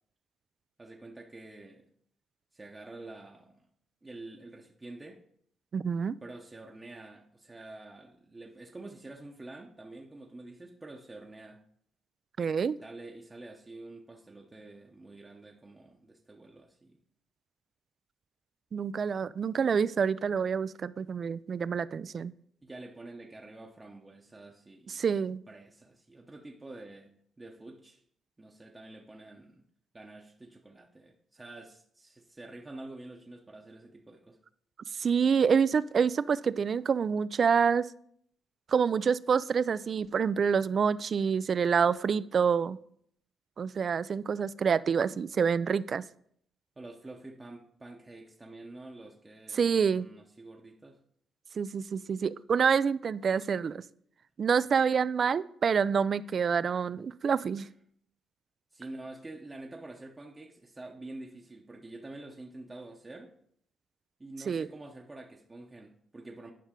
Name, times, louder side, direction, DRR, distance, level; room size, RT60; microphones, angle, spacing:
voice 1, 0.8-1.8 2.5-3.7 4.0-5.2 6.2-11.6 12.8-17.0 22.6-25.0 25.5-28.0 28.4-29.6 29.9-34.4 46.8-51.0 57.6-57.7 58.7-63.3 64.2-66.5, right 2 dB, 20° right, 0 dB, 0.8 m, -47 dB
voice 2, 5.7-6.2 12.4-12.8 18.7-22.3 24.9-25.4 35.0-37.9 38.7-42.8 43.6-46.0 49.6-50.1 51.6-53.8 54.4-57.7 64.5-64.7, right 6 dB, 50° right, 17 dB, 0.3 m, -27 dB
10.0 x 5.5 x 3.7 m, 0.66 s
cardioid pair, 90°, 0 cm